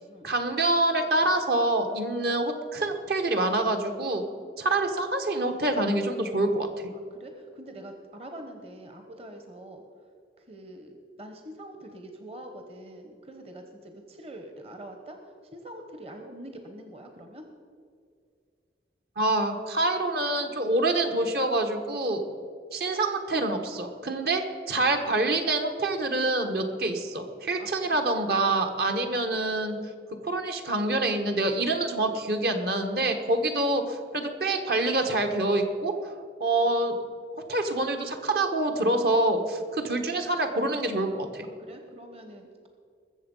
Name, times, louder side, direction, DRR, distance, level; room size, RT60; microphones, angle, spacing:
voice 1, 0.2-4.2 4.6-6.7 19.2-22.2 22.7-29.8 30.2-35.9 36.4-36.9 37.5-41.4, right 2 dB, 60° right, 5 dB, 1.3 m, -26 dB
voice 2, 6.9-9.8 10.4-15.2 15.5-17.4 27.6-28.0 41.6-42.5, right 1 dB, 35° right, 5 dB, 1.0 m, -44 dB
21.5 x 7.2 x 5.5 m, 2.3 s
head